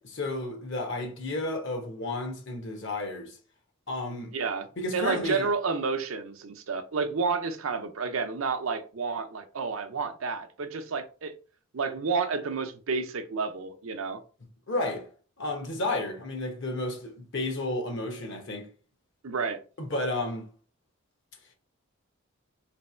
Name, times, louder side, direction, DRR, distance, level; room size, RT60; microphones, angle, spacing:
voice 1, 0.0-3.4 3.9-4.3 4.8-5.5 14.7-15.1 15.4-18.7 19.8-20.5, left 2 dB, 60° left, 1.1 m, -32 dB
voice 2, 4.3-4.7 4.9-11.3 11.7-14.2 19.2-19.6, right 4 dB, 75° right, 0.6 m, -30 dB
3.3 x 3.1 x 4.3 m
head